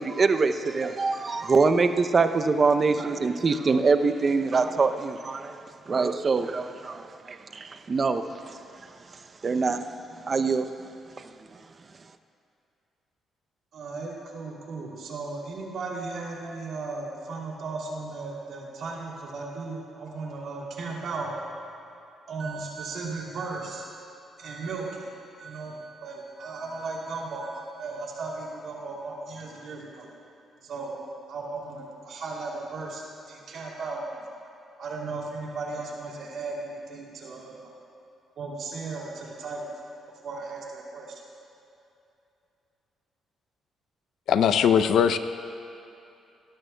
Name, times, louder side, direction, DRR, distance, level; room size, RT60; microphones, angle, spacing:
voice 1, 0.0-8.2 9.4-9.9 10.3-10.7, right 4 dB, 40° right, 9 dB, 0.5 m, -24 dB
voice 2, 13.7-21.3 22.3-23.9 24.4-25.1 25.4-30.1 30.6-31.0 31.3-34.2 34.8-37.7 38.4-39.7 40.2-41.2, right 3 dB, 65° right, -3 dB, 2.6 m, -36 dB
voice 3, 44.3-45.2, left 8 dB, 70° left, 10 dB, 0.5 m, -20 dB
18.0 x 12.5 x 2.2 m, 2.6 s
cardioid pair, 90°, 0 cm